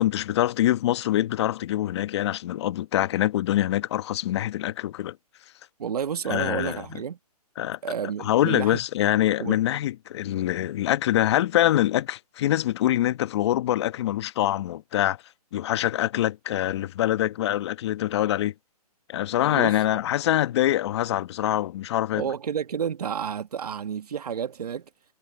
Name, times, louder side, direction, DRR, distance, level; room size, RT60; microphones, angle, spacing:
voice 1, 0.0-5.2 6.3-6.8 7.6-7.8 8.2-15.2 15.5-18.5 19.1-22.3, left 13 dB, 45° left, 1.4 m, -24 dB
voice 2, 5.8-7.2 7.8-8.8 9.4-9.6 19.5-19.8 22.2-24.9, right 8 dB, 75° right, 1.6 m, -30 dB
hypercardioid pair, 150°, 20 cm